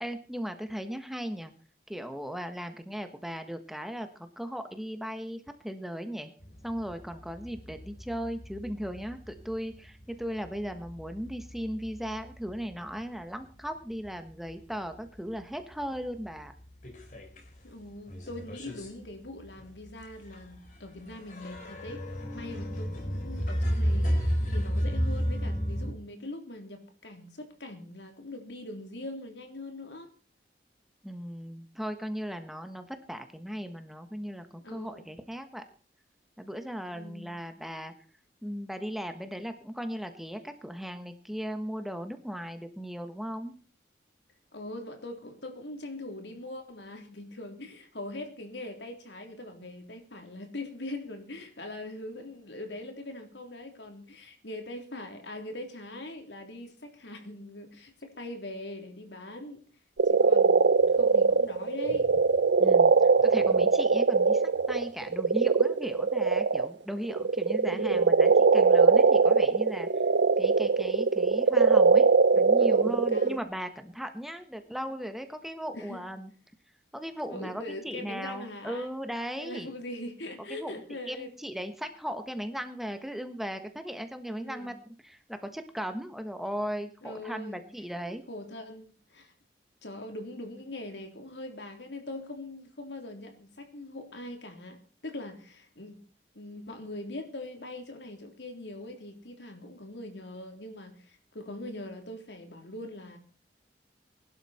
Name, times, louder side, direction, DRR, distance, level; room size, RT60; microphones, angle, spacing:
voice 1, 0.0-1.5 1.9-6.3 6.6-16.5 31.0-35.6 36.4-37.9 38.4-43.5 62.6-69.9 70.4-72.1 72.3-76.3 76.9-79.7 80.6-80.7 81.1-84.8 85.0-88.2, equal, ahead, 7 dB, 1.3 m, -37 dB
sound 1, 6.4-13.1 13.4-14.5 14.9-15.0 15.4-15.5 15.7-17.6 17.9-25.9, equal, 45° left, 4.0 m, -33 dB
voice 2, 17.6-22.0 22.3-30.1 34.6-35.1 36.9-37.3 44.5-59.6 60.0-62.1 67.6-68.1 71.9-72.1 72.6-73.4 75.7-76.0 77.3-78.9 79.4-81.3 84.3-84.7 87.0-87.6 88.3-89.3 89.8-96.0 96.3-103.2, left 1 dB, 85° left, 5 dB, 3.4 m, -42 dB
sound 2, 60.0-66.7 67.0-73.4, right 4 dB, 85° right, 0.7 m, -22 dB
20.5 x 12.5 x 4.3 m, 0.39 s
head